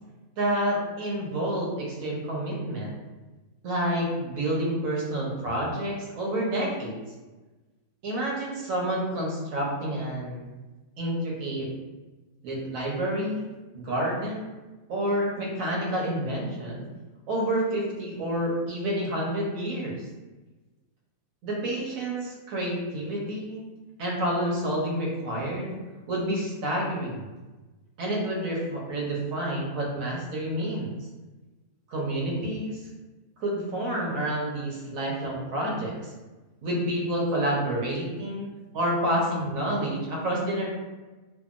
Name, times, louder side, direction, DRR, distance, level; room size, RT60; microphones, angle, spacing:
voice 1, 0.4-2.9 3.6-7.0 8.0-10.5 11.0-11.7 12.4-13.5 13.7-14.4 14.9-16.9 17.3-20.1 21.4-23.7 24.0-25.8 26.1-27.3 28.0-30.9 31.9-32.8 33.4-36.1 36.6-38.4 38.7-40.7, right 1 dB, 65° right, -3 dB, 1.1 m, -29 dB
2.8 x 2.4 x 2.4 m, 1.2 s
omnidirectional pair, 1.6 m